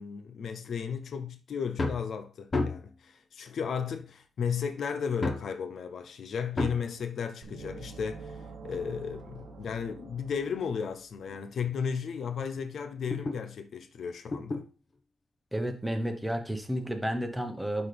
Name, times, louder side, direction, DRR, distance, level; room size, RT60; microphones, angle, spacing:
voice 1, 0.0-14.7, left 6 dB, 65° left, 0.7 m, -34 dB
sound 1, 1.7-2.1 2.5-3.0 4.0-4.1 5.2-5.5 6.6-6.9 8.2-9.9 10.5-10.6 11.3-11.4 11.7-11.8 12.2-13.4 14.3-14.7 16.0-16.1, left 3 dB, 30° left, 1.2 m, -33 dB
sound 2, 7.4-11.2, right 4 dB, 75° right, 1.2 m, -46 dB
voice 2, 15.5-17.9, equal, 5° right, 1.1 m, -31 dB
12.0 x 4.0 x 3.4 m
wide cardioid pair, 150°, 0 cm